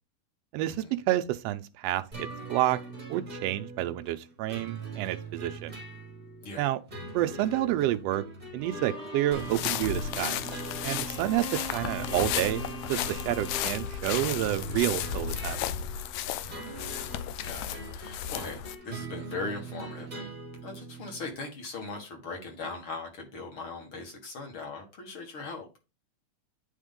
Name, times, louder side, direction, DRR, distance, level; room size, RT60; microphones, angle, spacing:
voice 1, 0.5-2.8 3.1-5.7 6.6-6.8 7.1-8.2 8.5-10.4 10.8-12.6 12.9-15.6, right 14 dB, 85° right, 1.4 m, -29 dB
sound 1, 2.1-21.3, right 3 dB, 30° right, 0.8 m, -42 dB
Bowed string instrument, 8.6-14.9, equal, 5° left, 0.3 m, -43 dB
sound 2, 9.3-18.8, left 10 dB, 80° left, 1.8 m, -34 dB
voice 2, 16.5-16.9 17.4-20.3 20.6-25.7, left 3 dB, 50° left, 2.1 m, -39 dB
9.2 x 3.6 x 3.7 m
omnidirectional pair, 3.4 m